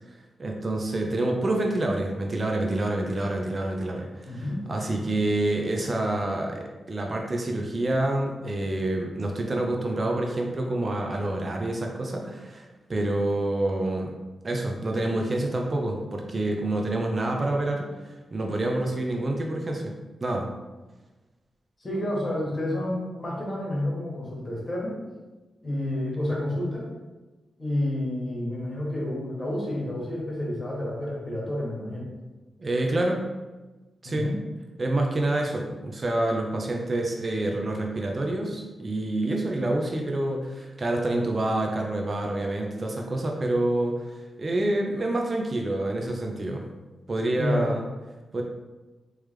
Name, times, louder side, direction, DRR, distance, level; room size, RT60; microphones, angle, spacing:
voice 1, 0.1-14.1 14.4-20.0 20.2-20.5 32.6-33.3 34.0-34.3 34.8-46.6 47.1-47.8 48.3-48.4, right 1 dB, 35° right, 1 dB, 0.6 m, -27 dB
voice 2, 4.2-4.6 21.8-25.0 25.6-26.9 27.6-32.1 34.0-34.4 47.3-47.6, left 1 dB, 25° left, -4 dB, 1.4 m, -30 dB
3.5 x 3.2 x 3.2 m, 1.2 s
cardioid pair, 90°, 0 cm